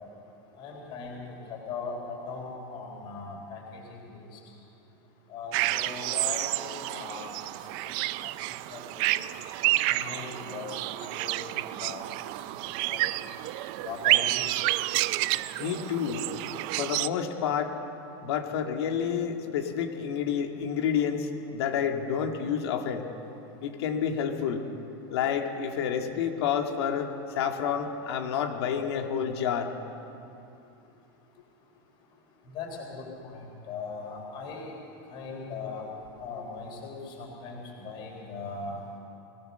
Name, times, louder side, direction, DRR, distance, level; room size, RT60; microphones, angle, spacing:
voice 1, 0.6-4.4 5.3-7.4 7.8-7.9 8.2-8.4 8.7-9.2 9.9-13.2 13.8-14.4 32.5-34.8 35.1-35.9 36.2-38.9, left 4 dB, 35° left, 0 dB, 3.8 m, -40 dB
sound 1, 5.5-17.1, right 17 dB, 40° right, 0.4 m, -29 dB
voice 2, 15.6-16.3 16.8-17.8 18.2-23.1 23.6-24.6 25.1-29.7, left 7 dB, 80° left, 3 dB, 2.3 m, -29 dB
22.0 x 17.5 x 6.8 m, 2.7 s
supercardioid pair, 175°, 13 cm